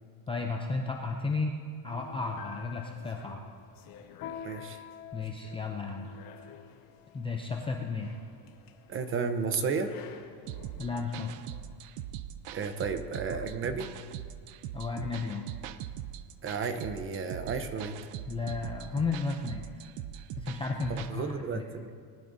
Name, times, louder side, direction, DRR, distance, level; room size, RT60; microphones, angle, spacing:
voice 1, 0.3-1.6 1.8-3.4 5.1-6.1 7.1-8.1 10.8-11.3 14.7-15.5 18.3-19.7 20.4-21.6, left 4 dB, 10° left, 1 dB, 0.4 m, -33 dB
sound 1, 1.9-11.6, left 8 dB, 45° left, 1.2 m, -49 dB
voice 2, 4.4-4.8 8.9-9.9 12.5-13.9 16.4-17.9 21.1-21.9, right 5 dB, 25° right, 9 dB, 0.8 m, -32 dB
sound 2, 10.5-21.1, right 11 dB, 60° right, 0.7 m, -41 dB
19.5 x 11.5 x 2.7 m, 2.3 s
supercardioid pair, 140°, 48 cm